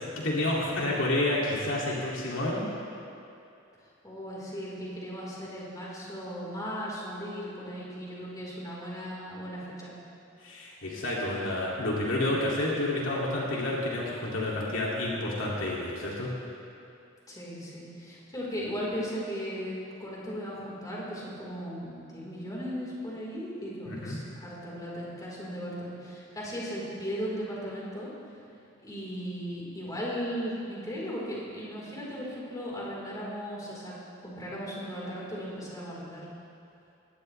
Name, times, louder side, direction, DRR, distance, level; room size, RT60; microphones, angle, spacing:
voice 1, 0.0-2.6 10.4-16.3 23.9-24.2, left 1 dB, 70° left, -4 dB, 2.6 m, -29 dB
voice 2, 4.0-9.9 17.3-28.1 28.8-33.9 34.2-36.3, equal, 20° left, -6 dB, 4.1 m, -37 dB
21.0 x 17.5 x 3.4 m, 2.7 s
head